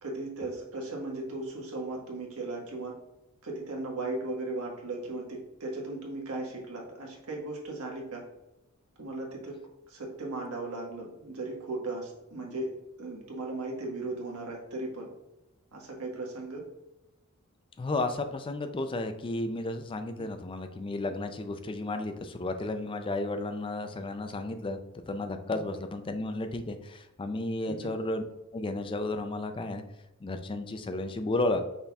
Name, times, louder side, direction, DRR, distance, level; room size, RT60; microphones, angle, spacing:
voice 1, 0.0-2.9 3.4-8.3 9.0-9.6 9.9-12.7 13.0-15.1 15.7-16.7 20.2-20.3 25.5-25.6 27.6-27.9, right 2 dB, 80° right, -1 dB, 1.3 m, -37 dB
voice 2, 17.8-24.8 25.1-28.2 28.5-29.8 30.2-31.6, left 2 dB, 25° left, 7 dB, 0.3 m, -33 dB
5.5 x 4.1 x 2.3 m, 0.95 s
head